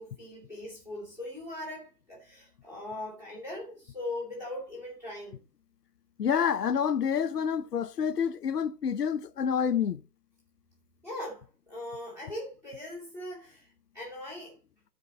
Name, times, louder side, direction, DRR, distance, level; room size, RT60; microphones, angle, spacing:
voice 1, 0.0-5.4 11.0-14.6, left 1 dB, 5° right, 2.4 m, -40 dB
voice 2, 6.2-10.0, left 7 dB, 80° left, 0.9 m, -28 dB
12.0 x 4.7 x 4.1 m
hypercardioid pair, 170°, 46 cm